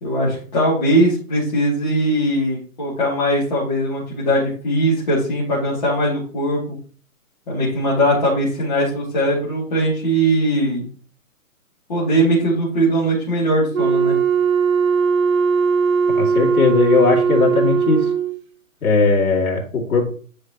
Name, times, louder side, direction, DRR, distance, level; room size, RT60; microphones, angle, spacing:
voice 1, 0.0-6.8 7.5-10.8 11.9-14.2, right 1 dB, 30° left, -8 dB, 2.6 m, -20 dB
Wind instrument woodwind instrument, 13.7-18.4, right 6 dB, 70° right, 1.1 m, -18 dB
voice 2, 16.2-18.1 18.8-20.0, left 4 dB, 80° left, -2 dB, 2.9 m, -18 dB
9.8 x 5.2 x 3.0 m, 0.42 s
hypercardioid pair, 180°, 42 cm